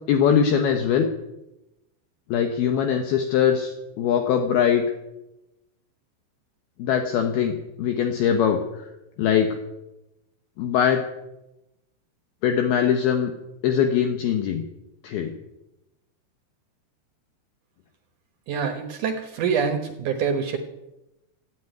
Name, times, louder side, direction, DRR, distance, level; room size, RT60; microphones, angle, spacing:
voice 1, 0.1-1.1 2.3-4.8 6.8-8.9 9.2-9.6 10.6-11.0 12.4-13.3 13.6-14.6 15.0-15.3, left 8 dB, 70° left, 5 dB, 2.8 m, -22 dB
voice 2, 18.5-20.6, right 6 dB, 65° right, 6 dB, 2.0 m, -25 dB
15.5 x 9.5 x 9.2 m, 0.93 s
omnidirectional pair, 5.0 m